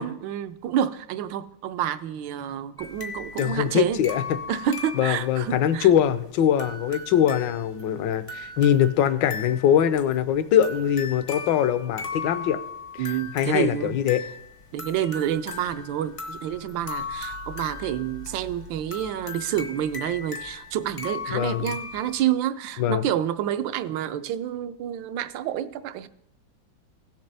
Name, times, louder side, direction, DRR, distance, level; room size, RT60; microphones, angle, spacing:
voice 1, 0.0-4.0 4.5-5.9 13.0-14.0 14.7-26.1, right 10 dB, 80° right, 12 dB, 1.3 m, -28 dB
sound 1, 2.8-22.2, left 4 dB, 40° left, 0.4 m, -38 dB
voice 2, 3.4-4.2 5.0-12.6 13.0-14.2 21.3-21.7 22.8-23.0, left 10 dB, 75° left, 13 dB, 1.3 m, -22 dB
16.5 x 6.7 x 3.3 m, 0.76 s
omnidirectional pair, 2.1 m